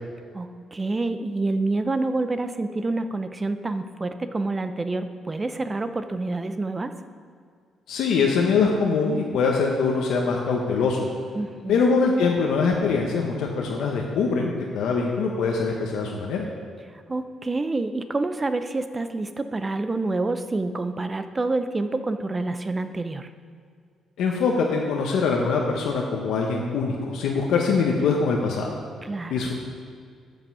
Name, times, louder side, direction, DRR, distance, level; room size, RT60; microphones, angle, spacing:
voice 1, 0.3-7.0 11.3-11.8 16.9-23.3 29.0-29.4, right 2 dB, 15° right, 9 dB, 0.5 m, -28 dB
voice 2, 7.9-11.1 11.7-16.5 24.2-28.7 29.3-29.5, left 4 dB, 75° left, 0 dB, 1.0 m, -23 dB
13.5 x 5.4 x 5.4 m, 2.2 s
cardioid pair, 165°, 0 cm